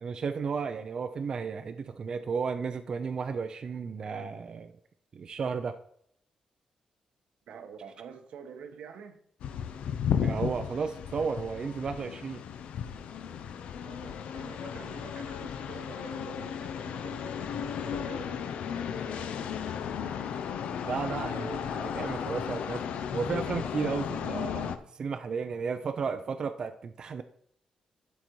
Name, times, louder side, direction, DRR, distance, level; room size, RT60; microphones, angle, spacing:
voice 1, 0.0-4.7 5.1-5.8 10.2-12.4 20.8-22.8 23.1-27.2, right 5 dB, 40° right, 0.4 m, -33 dB
voice 2, 7.5-9.2 13.7-20.0, right 7 dB, 85° right, 1.1 m, -48 dB
sound 1, 9.4-24.8, left 8 dB, 85° left, 0.6 m, -34 dB
11.5 x 4.1 x 4.6 m
wide cardioid pair, 150°, 2 cm